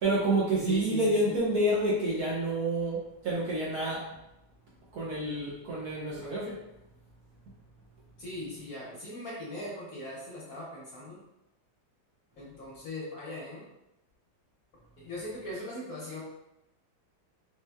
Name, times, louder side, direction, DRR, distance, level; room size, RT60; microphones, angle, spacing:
voice 1, 0.0-4.1 4.9-6.6, right 1 dB, 65° right, -6 dB, 1.0 m, -28 dB
voice 2, 0.7-1.4 8.2-11.2 12.4-13.7 15.0-16.2, left 1 dB, 60° left, -5 dB, 1.0 m, -39 dB
4.4 x 3.1 x 2.2 m, 0.89 s
omnidirectional pair, 2.2 m